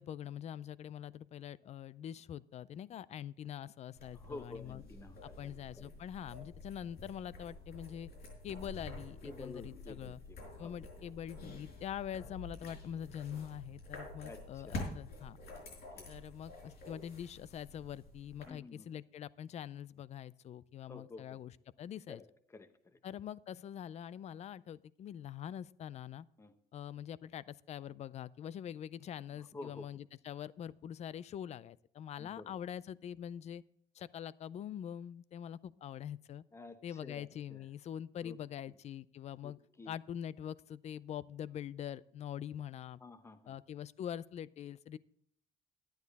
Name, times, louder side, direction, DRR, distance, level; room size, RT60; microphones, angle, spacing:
voice 1, 0.0-4.8 5.4-8.1 8.4-10.2 10.6-15.4 16.1-22.2 23.0-26.3 26.7-33.6 33.9-36.4 36.8-39.6 39.9-43.0 43.5-45.0, left 10 dB, 40° left, 20 dB, 0.4 m, -44 dB
sound 1, 4.0-18.5, left 2 dB, 65° left, 5.0 m, -49 dB
voice 2, 4.1-5.9 9.2-10.7 14.2-14.9 15.7-16.1 18.5-18.9 20.9-21.4 22.1-22.2 22.5-23.0 26.4-26.5 29.5-29.8 32.2-32.5 36.5-37.7 38.2-38.4 39.4-39.9 43.0-43.6, left 3 dB, 15° left, 10 dB, 0.8 m, -50 dB
12.0 x 10.5 x 4.1 m, 0.67 s
cardioid pair, 175°, 17 cm